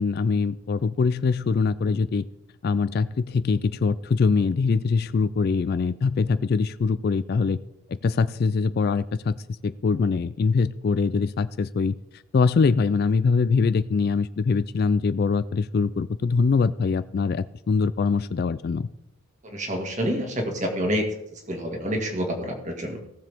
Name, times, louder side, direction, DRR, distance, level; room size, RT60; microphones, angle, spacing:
voice 1, 0.0-2.3 2.6-7.6 7.9-9.4 9.6-18.9, left 4 dB, 45° left, 15 dB, 0.3 m, -23 dB
voice 2, 19.4-21.1 21.3-23.0, equal, 35° right, 2 dB, 2.0 m, -28 dB
18.0 x 7.5 x 3.5 m, 0.83 s
head